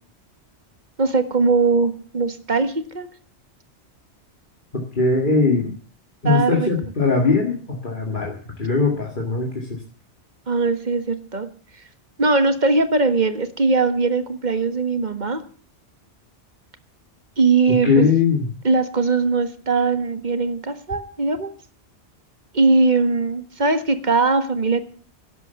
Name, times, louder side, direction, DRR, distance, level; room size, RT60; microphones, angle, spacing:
voice 1, 1.0-3.1 6.2-6.7 10.5-11.5 12.2-15.4 17.4-18.1 18.6-21.5 22.5-24.8, right 3 dB, 40° right, 10 dB, 1.5 m, -20 dB
voice 2, 4.7-5.7 6.2-9.8 17.7-18.4, left 4 dB, 45° left, 1 dB, 2.3 m, -20 dB
11.5 x 11.0 x 6.9 m, 0.43 s
omnidirectional pair, 1.2 m